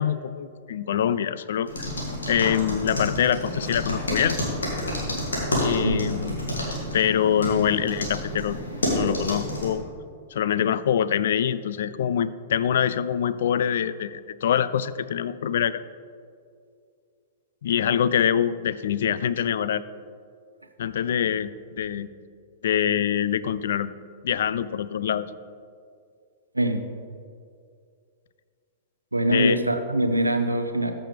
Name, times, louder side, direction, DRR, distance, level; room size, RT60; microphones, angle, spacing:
voice 1, 0.0-1.9 2.3-4.4 5.6-6.4 6.9-8.6 8.9-9.8 10.3-15.8 17.6-19.8 20.8-22.1 22.6-23.9 24.2-25.3 29.3-29.6, left 9 dB, 60° left, 15 dB, 0.3 m, -24 dB
sound 1, 1.7-9.7, left 1 dB, 75° left, 2.3 m, -29 dB
voice 2, 5.8-6.1 26.5-26.9 29.1-30.9, right 1 dB, 90° right, 7 dB, 0.6 m, -23 dB
14.0 x 6.2 x 3.3 m, 2.3 s
figure-of-eight pair, 105°, 0 cm